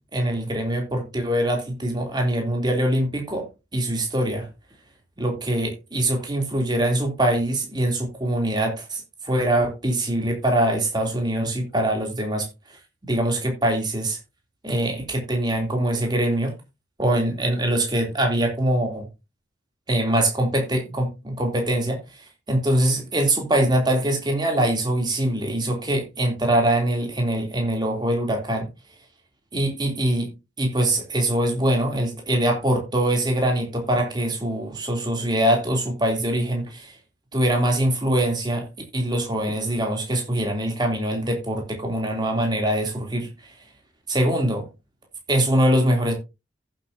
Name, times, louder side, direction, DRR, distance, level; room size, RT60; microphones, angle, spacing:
voice 1, 0.1-3.5 3.7-4.5 5.2-12.5 13.1-14.2 14.6-16.5 17.0-19.1 19.9-22.0 22.5-28.7 29.5-30.3 30.6-36.9 37.3-38.6 38.9-43.3 44.1-44.7 45.3-46.2, right 1 dB, 20° right, 2.9 m, -23 dB
14.5 x 7.7 x 2.7 m
head